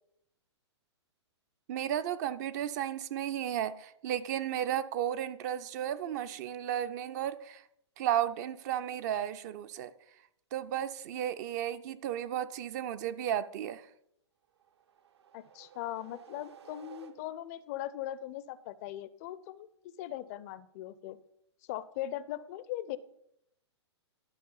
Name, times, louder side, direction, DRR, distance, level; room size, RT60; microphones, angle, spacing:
voice 1, 1.7-7.6 8.0-9.9 10.5-13.8, right 10 dB, 40° right, 13 dB, 0.4 m, -34 dB
sound 1, 14.5-17.6, right 8 dB, 65° right, 0.8 m, -55 dB
voice 2, 15.3-19.7 20.0-21.2 21.7-23.0, left 13 dB, 35° left, 17 dB, 0.4 m, -39 dB
11.5 x 4.6 x 5.5 m, 0.77 s
figure-of-eight pair, 115°, 15 cm